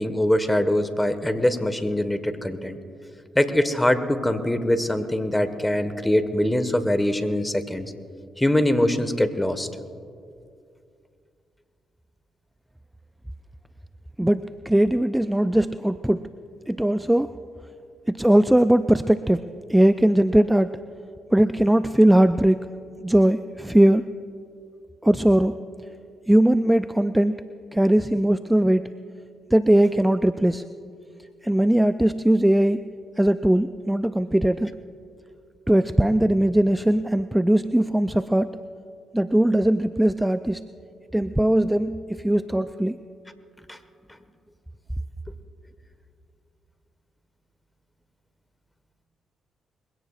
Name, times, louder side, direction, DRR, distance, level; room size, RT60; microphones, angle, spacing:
voice 1, 0.0-2.8 3.3-7.9 8.4-9.7 43.7-43.8, left 1 dB, 10° left, 9 dB, 1.4 m, -23 dB
voice 2, 14.2-16.3 16.7-17.3 18.1-19.4 19.7-20.8 21.3-22.7 23.0-24.0 25.0-25.6 26.3-28.8 29.5-30.6 31.4-32.8 33.2-34.7 35.7-38.6 39.1-40.6 41.1-43.0, right 1 dB, 10° right, 12 dB, 0.4 m, -20 dB
22.5 x 17.0 x 2.5 m, 2.3 s
hypercardioid pair, 45°, 0 cm